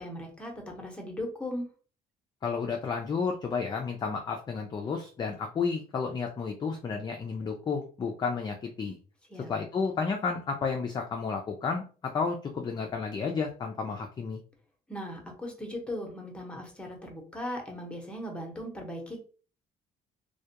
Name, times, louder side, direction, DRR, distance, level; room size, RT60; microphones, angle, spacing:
voice 1, 0.0-1.6 9.3-9.5 14.9-19.2, left 1 dB, 5° left, 1 dB, 0.8 m, -38 dB
voice 2, 2.4-9.0 9.5-14.4, left 5 dB, 25° left, 3 dB, 0.3 m, -32 dB
2.2 x 2.2 x 2.8 m, 0.39 s
cardioid pair, 110°, 17 cm